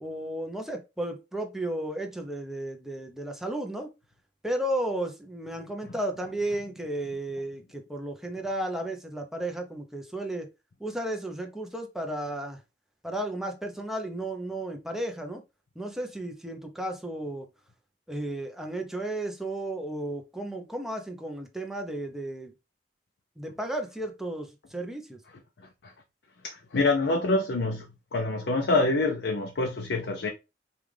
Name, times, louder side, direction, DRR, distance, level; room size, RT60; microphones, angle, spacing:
voice 1, 0.0-3.9 4.4-10.5 10.8-12.6 13.0-15.4 15.8-17.5 18.1-22.5 23.4-25.2, right 1 dB, 5° right, 0.7 m, -33 dB
voice 2, 26.4-27.8 28.1-30.3, left 2 dB, 80° left, 0.6 m, -26 dB
5.4 x 2.4 x 3.3 m
head